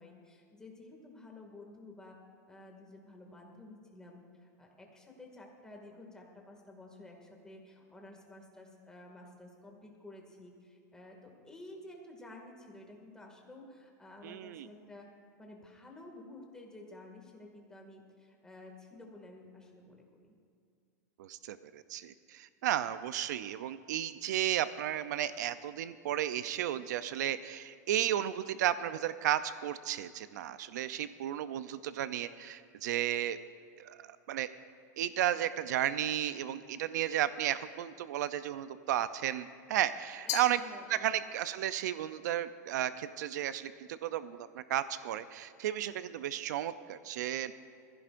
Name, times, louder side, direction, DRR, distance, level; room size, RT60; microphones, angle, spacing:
voice 1, 0.0-2.2 2.5-15.1 15.4-20.0 40.2-41.2, left 2 dB, 5° left, 0 dB, 2.1 m, -52 dB
voice 2, 14.2-14.7 21.2-33.4 33.8-34.5 35.0-40.6 40.9-47.5, right 12 dB, 80° right, 13 dB, 0.5 m, -33 dB
Glass, 40.3-41.5, left 13 dB, 75° left, 0.8 m, -40 dB
21.0 x 15.5 x 2.6 m, 2.3 s
supercardioid pair, 135°, 9 cm